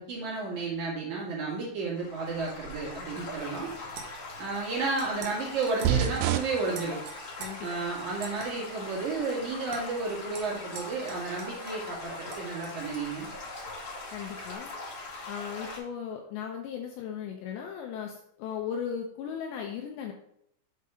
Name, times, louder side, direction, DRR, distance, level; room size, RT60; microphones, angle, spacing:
voice 1, 0.0-3.7 4.4-7.0 7.6-13.3, right 3 dB, 50° right, -5 dB, 2.9 m, -32 dB
Stream / Gurgling / Trickle dribble, 2.0-15.8, left 2 dB, 45° left, 2.9 m, -41 dB
sound 1, 3.9-4.4 5.0-5.4 5.6-6.0 6.3-6.5 6.7-7.5 8.2-8.5 9.2-9.3 9.7-9.8 10.3-11.9 12.3-12.7, right 6 dB, 70° right, 2.5 m, -44 dB
sound 2, 5.9-14.6, right 9 dB, 90° right, 3.3 m, -36 dB
voice 2, 14.1-14.7 15.3-20.1, left 8 dB, 80° left, 3 dB, 2.6 m, -37 dB
7.6 x 4.2 x 4.8 m, 0.72 s
omnidirectional pair, 5.7 m